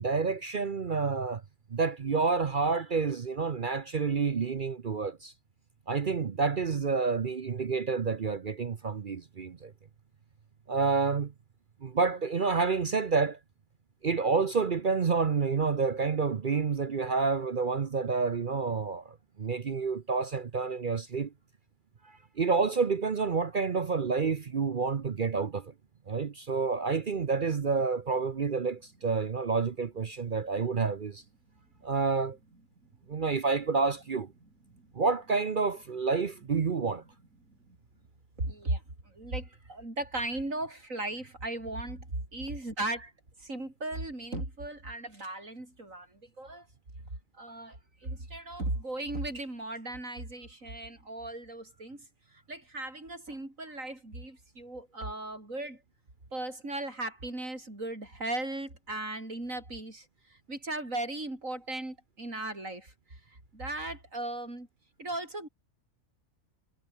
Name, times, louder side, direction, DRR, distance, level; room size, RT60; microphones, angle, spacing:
voice 1, 0.0-1.4 1.7-5.3 5.9-9.7 10.7-11.3 11.8-13.4 14.0-21.3 22.0-25.7 26.1-31.2 31.8-32.4 33.1-34.3 34.9-37.0, right 4 dB, 45° right, 0.8 m, -29 dB
voice 2, 38.4-38.8 39.1-43.1 43.4-46.7 47.4-47.8 48.0-52.0 52.5-55.8 56.3-60.1 60.3-62.9 63.5-64.7 65.0-65.5, right 2 dB, 65° right, 7.3 m, -37 dB
omnidirectional pair, 1.5 m